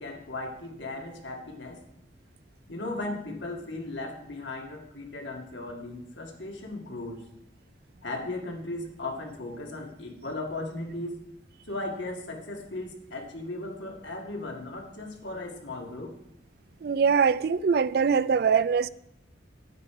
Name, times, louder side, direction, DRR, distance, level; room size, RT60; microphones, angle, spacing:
voice 1, 0.0-1.8 2.7-7.3 8.0-11.2 11.7-16.1, left 2 dB, 80° left, 2.1 m, -37 dB
voice 2, 16.8-18.9, right 6 dB, 55° right, 0.4 m, -23 dB
9.2 x 8.7 x 4.8 m
head